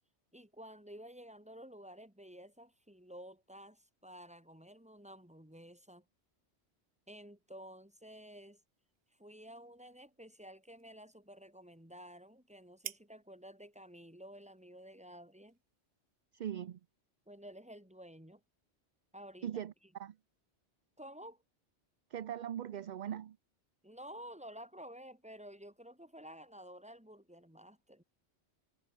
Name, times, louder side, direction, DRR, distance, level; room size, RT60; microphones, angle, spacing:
voice 1, 0.3-6.1 7.1-8.6 9.1-15.6 17.3-18.4 19.1-19.5 21.0-21.4 23.8-28.0, equal, 5° right, 3.2 m, -52 dB
sound 1, 8.5-16.2, right 9 dB, 90° right, 1.2 m, -56 dB
voice 2, 16.3-16.8 19.4-19.7 20.0-20.2 22.1-23.4, right 10 dB, 55° right, 0.6 m, -40 dB
omnidirectional pair, 1.1 m